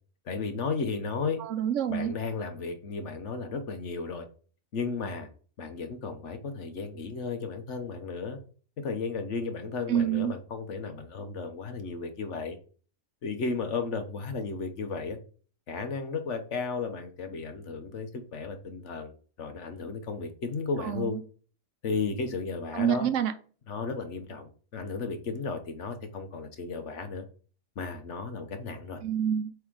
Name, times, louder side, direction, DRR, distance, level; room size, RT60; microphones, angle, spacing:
voice 1, 0.2-1.4 1.9-4.3 4.7-5.3 5.6-8.4 8.8-12.6 13.2-15.2 15.7-21.2 21.8-23.1 23.7-27.2 27.8-29.0, left 4 dB, 65° left, 1.3 m, -34 dB
voice 2, 1.4-2.1 9.9-10.3 20.8-21.2 22.7-23.3 29.0-29.5, right 9 dB, 70° right, 1.0 m, -27 dB
7.8 x 3.5 x 3.9 m
omnidirectional pair, 1.4 m